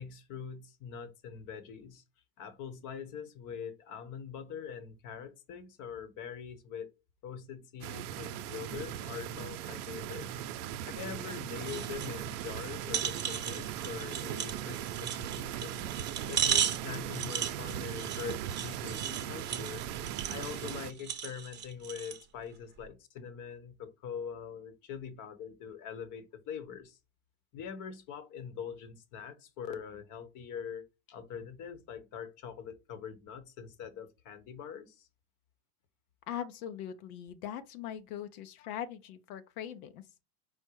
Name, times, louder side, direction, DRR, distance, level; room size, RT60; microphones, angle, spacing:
voice 1, 0.0-2.0 2.4-6.9 7.2-10.3 10.9-15.9 16.3-19.9 20.3-27.0 27.5-35.1, left 7 dB, 45° left, 1.0 m, -43 dB
sound 1, 7.8-20.9, right 10 dB, 85° right, 0.6 m, -39 dB
sound 2, 11.7-12.1 12.5-12.6 12.9-22.2 22.8-22.9, right 8 dB, 25° right, 0.7 m, -36 dB
voice 2, 36.3-40.0, left 10 dB, 80° left, 0.7 m, -41 dB
5.0 x 2.1 x 4.5 m
supercardioid pair, 120°, 44 cm